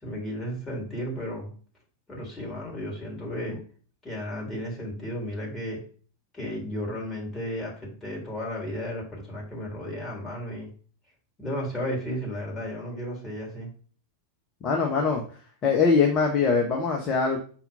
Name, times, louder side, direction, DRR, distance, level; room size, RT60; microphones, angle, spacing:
voice 1, 0.0-1.5 2.1-3.6 4.0-5.8 6.3-10.7 11.4-13.7, equal, 15° left, -2 dB, 3.5 m, -34 dB
voice 2, 14.6-15.2 15.6-17.4, left 5 dB, 30° left, 1 dB, 1.1 m, -22 dB
5.9 x 4.2 x 5.5 m, 0.41 s
figure-of-eight pair, 90°, 0 cm